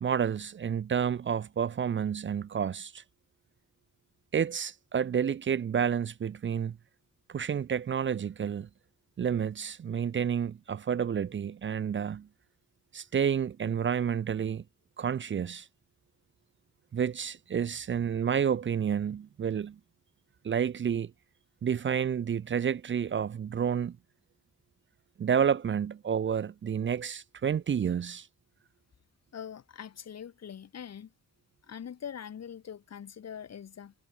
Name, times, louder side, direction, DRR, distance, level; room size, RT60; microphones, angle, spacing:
voice 1, 0.0-3.0 4.3-6.8 7.3-8.7 9.2-12.3 12.9-14.6 15.0-15.7 16.9-19.8 20.4-21.1 21.6-24.0 25.2-28.3, right 8 dB, 40° right, 0.6 m, -30 dB
voice 2, 29.3-31.1 31.7-33.9, left 8 dB, 60° left, 2.6 m, -43 dB
cardioid pair, 105°, 29 cm